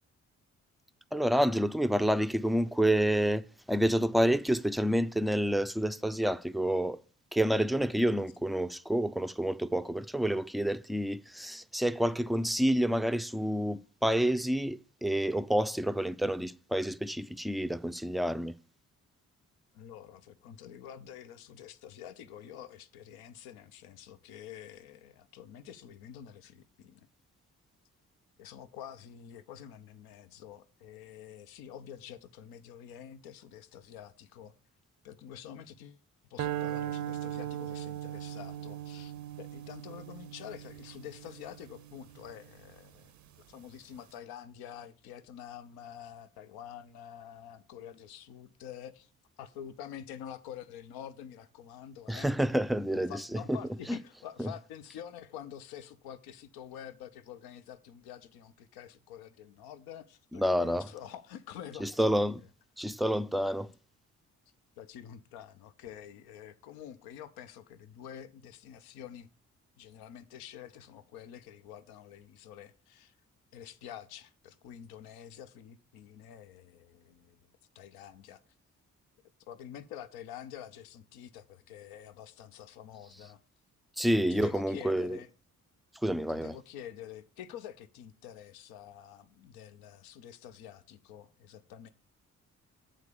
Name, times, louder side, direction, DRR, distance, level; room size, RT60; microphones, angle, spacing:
voice 1, 1.1-7.0 7.3-18.6 52.1-53.6 53.9-54.0 54.4-54.5 60.3-60.9 61.8-62.4 62.8-63.7 84.0-85.2 86.0-86.6, equal, ahead, 0.3 m, -28 dB
voice 2, 19.7-27.1 28.4-34.5 35.0-36.0 36.3-43.1 43.5-49.1 49.4-52.3 52.9-62.2 64.8-69.3 69.8-73.1 73.5-77.4 77.7-78.4 79.5-83.4 84.3-85.3 86.3-91.9, left 9 dB, 80° left, 0.6 m, -47 dB
sound 1, 36.4-42.7, right 12 dB, 50° right, 0.6 m, -39 dB
8.3 x 3.7 x 6.7 m
hypercardioid pair, 45°, 36 cm